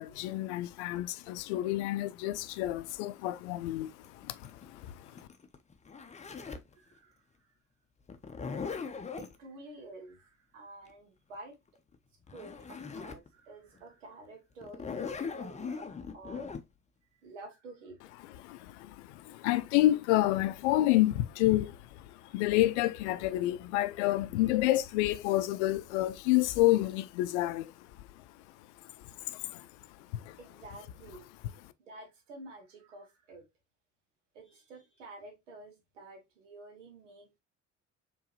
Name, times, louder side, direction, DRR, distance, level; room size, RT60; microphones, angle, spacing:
voice 1, 0.0-3.9 4.2-4.9 18.4-21.8 22.3-27.7 29.3-29.7 30.1-30.4, left 16 dB, 65° left, 0.5 m, -29 dB
Zipper (clothing), 4.0-6.7 8.1-9.4 11.9-12.0 12.3-13.3 13.8-13.9 14.6-16.6, left 5 dB, 20° left, 0.6 m, -40 dB
voice 2, 6.7-7.1 9.2-11.5 12.3-15.9 16.1-16.5 17.2-18.0 30.4-31.3 31.8-33.4 34.3-37.4, right 2 dB, 75° right, 1.3 m, -50 dB
4.6 x 3.1 x 2.9 m
figure-of-eight pair, 50°, 37 cm